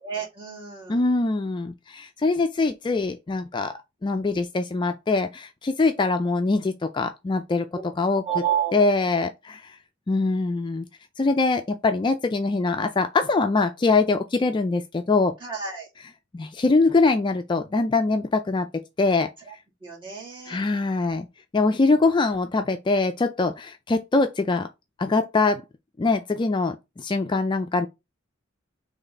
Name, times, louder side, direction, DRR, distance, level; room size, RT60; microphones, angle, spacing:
voice 1, 0.0-1.0 8.2-8.9 15.4-15.9 19.5-19.6 19.8-20.6, right 9 dB, 25° right, 2.1 m, -30 dB
voice 2, 0.9-3.7 4.0-7.7 8.0-8.2 8.7-9.8 10.1-10.9 11.2-15.3 16.3-18.7 19.0-19.3 20.5-21.3 21.5-24.7 25.0-25.6 26.0-27.9, left 3 dB, 25° left, 0.3 m, -23 dB
4.0 x 3.2 x 4.0 m
head